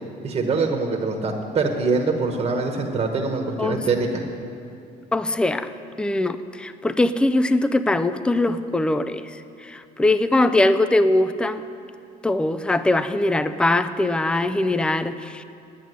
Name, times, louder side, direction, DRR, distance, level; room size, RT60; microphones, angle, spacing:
voice 1, 0.2-4.2, right 4 dB, 35° right, 2 dB, 1.3 m, -24 dB
voice 2, 5.1-5.7 6.0-11.7 12.2-15.4, left 2 dB, 5° left, 12 dB, 0.4 m, -21 dB
10.0 x 8.4 x 9.3 m, 2.5 s
cardioid pair, 110°, 17 cm